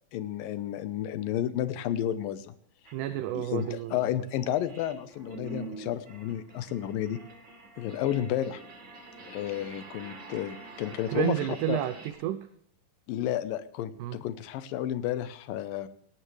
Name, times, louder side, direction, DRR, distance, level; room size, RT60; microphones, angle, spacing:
voice 1, 0.1-2.5 3.4-7.2 7.8-8.6 9.3-11.3 11.7-11.8 13.1-15.9, left 11 dB, 80° left, 13 dB, 2.6 m, -31 dB
sound 1, 2.8-2.9 3.4-12.1, right 2 dB, 40° right, 2.1 m, -46 dB
voice 2, 2.9-4.0 11.1-12.5 14.0-14.2, right 13 dB, 75° right, 11 dB, 2.0 m, -30 dB
18.0 x 17.5 x 3.3 m, 0.63 s
omnidirectional pair, 4.1 m